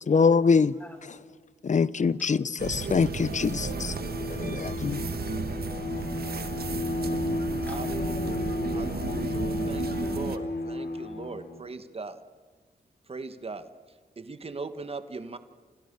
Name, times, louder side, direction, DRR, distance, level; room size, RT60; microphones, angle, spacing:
voice 1, 0.1-0.8 1.6-3.9 4.3-5.1, left 5 dB, 45° left, 0.8 m, -24 dB
voice 2, 0.8-1.4 2.8-3.3 3.6-3.8 5.5-5.9 6.5-7.9 9.3-9.5, left 1 dB, 10° left, 3.9 m, -50 dB
voice 3, 2.0-3.3 4.1-6.6 8.0-9.0, left 3 dB, 65° left, 5.5 m, -45 dB
sound 1, 2.6-10.4, right 5 dB, 65° right, 1.7 m, -34 dB
Bowed string instrument, 3.1-11.6, left 2 dB, 85° left, 3.3 m, -33 dB
voice 4, 7.6-8.3 8.7-12.2 13.1-13.7 14.2-15.4, right 3 dB, 35° right, 1.5 m, -39 dB
29.5 x 28.0 x 6.9 m
wide cardioid pair, 115°, 17 cm